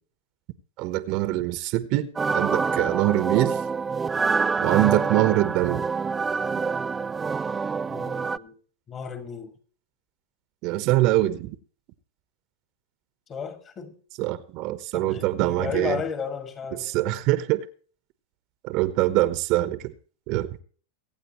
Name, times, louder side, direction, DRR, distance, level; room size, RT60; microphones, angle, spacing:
voice 1, 0.8-3.6 4.6-5.9 10.6-11.6 14.2-16.0 16.8-17.6 18.6-19.9 20.3-20.5, right 16 dB, 50° right, 1.2 m, -24 dB
sound 1, 2.2-8.4, right 5 dB, 15° right, 0.4 m, -26 dB
voice 2, 7.9-8.6 8.9-9.5 13.3-13.9 14.9-17.2, left 6 dB, 30° left, 2.5 m, -34 dB
23.5 x 8.7 x 3.2 m
hypercardioid pair, 110°, 0 cm